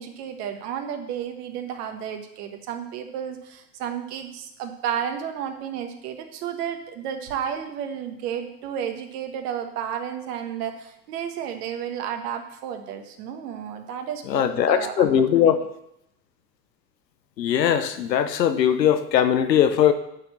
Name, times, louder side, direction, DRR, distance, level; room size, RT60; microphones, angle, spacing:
voice 1, 0.0-15.1 15.3-15.5, right 8 dB, 65° right, 6 dB, 1.5 m, -32 dB
voice 2, 14.3-15.6 17.4-19.9, left 9 dB, 85° left, 11 dB, 0.9 m, -20 dB
9.7 x 4.5 x 7.2 m, 0.80 s
hypercardioid pair, 75°, 49 cm